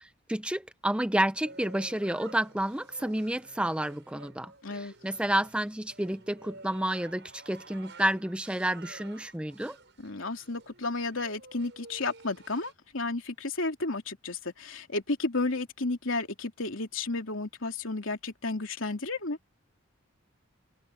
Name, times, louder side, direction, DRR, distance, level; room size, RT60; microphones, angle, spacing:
voice 1, 0.0-9.8, right 1 dB, 5° right, 0.5 m, -30 dB
sound 1, 1.4-12.7, right 3 dB, 60° right, 7.1 m, -51 dB
voice 2, 4.6-4.9 10.0-19.4, left 3 dB, 75° left, 3.0 m, -32 dB
head